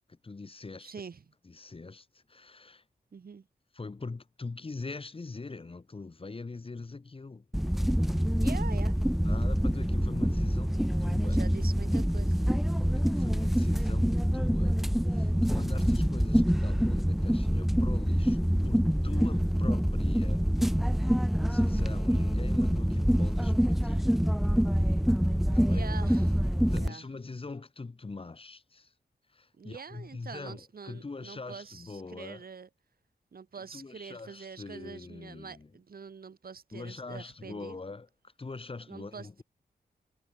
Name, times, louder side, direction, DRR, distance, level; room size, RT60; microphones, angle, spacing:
voice 1, 0.1-0.9 1.4-2.8 3.7-7.5 9.2-11.4 12.9-14.8 15.1-20.4 21.5-24.1 25.5-25.9 26.7-28.9 29.3-32.4 33.5-35.7 36.7-38.1 38.4-39.4, left 3 dB, 35° left, 6.5 m, -43 dB
voice 2, 0.8-1.2 3.1-3.5 8.4-9.0 11.2-12.4 25.7-26.4 26.7-27.1 29.6-32.7 33.3-37.8 38.9-39.4, right 6 dB, 65° right, 4.0 m, -45 dB
sound 1, 7.5-26.9, equal, ahead, 0.4 m, -26 dB
wide cardioid pair, 160°, 16 cm